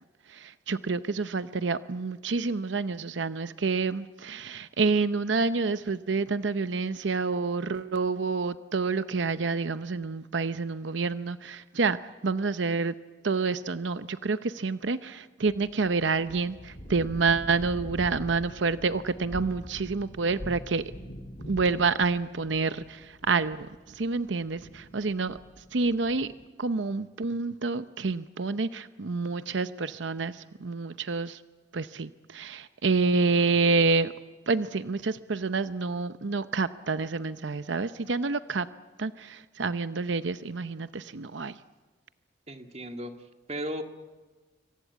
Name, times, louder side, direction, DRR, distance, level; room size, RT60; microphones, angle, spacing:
voice 1, 0.3-12.0 12.2-12.9 13.2-20.8 21.5-25.4 25.7-26.3 26.6-31.4 31.7-34.1 34.5-38.7 39.0-41.6, right 4 dB, 85° right, 12 dB, 0.7 m, -28 dB
sound 1, 15.4-26.5, equal, 45° left, 3.7 m, -44 dB
voice 2, 42.5-43.1 43.5-43.8, equal, 35° right, 6 dB, 2.0 m, -35 dB
26.5 x 25.0 x 8.4 m, 1.3 s
head